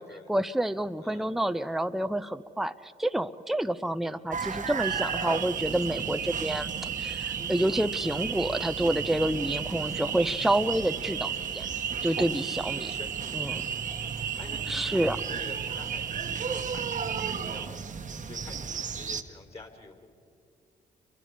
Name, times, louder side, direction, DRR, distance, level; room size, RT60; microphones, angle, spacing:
voice 1, 0.3-6.7 7.0-11.7 12.0-12.9 13.3-13.6 14.7-15.2, right 1 dB, ahead, 10 dB, 0.7 m, -28 dB
voice 2, 1.0-1.4 12.7-20.1, left 3 dB, 35° left, 3 dB, 4.5 m, -48 dB
sound 1, 4.3-19.2, right 5 dB, 50° right, 1.3 m, -37 dB
sound 2, 4.8-17.7, right 8 dB, 70° right, 1.0 m, -34 dB
29.0 x 24.0 x 5.0 m, 2.2 s
supercardioid pair, 55°, 17 cm